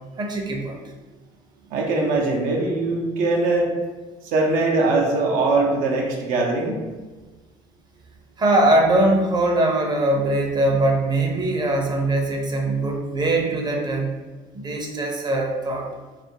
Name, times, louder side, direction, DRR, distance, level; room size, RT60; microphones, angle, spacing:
voice 1, 0.2-0.8 8.4-14.1 14.5-15.9, right 2 dB, 30° right, 1 dB, 0.6 m, -21 dB
voice 2, 1.7-3.7 4.2-6.8, right 2 dB, 70° right, 0 dB, 0.5 m, -21 dB
2.4 x 2.4 x 2.7 m, 1.3 s
supercardioid pair, 80°, 14 cm